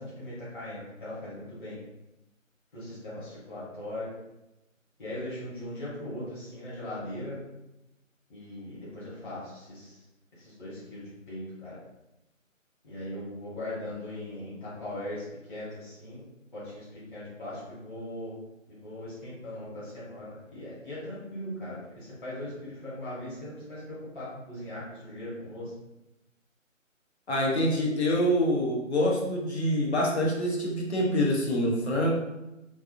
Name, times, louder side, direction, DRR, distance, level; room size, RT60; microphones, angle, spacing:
voice 1, 0.0-1.8 2.7-4.1 5.0-7.4 8.3-10.0 10.4-11.8 12.8-16.3 16.5-18.3 18.7-25.7, left 1 dB, 35° left, -10 dB, 1.2 m, -39 dB
voice 2, 27.3-32.1, equal, 55° left, -2 dB, 0.9 m, -26 dB
3.4 x 2.5 x 2.5 m, 0.94 s
figure-of-eight pair, 160°, 40 cm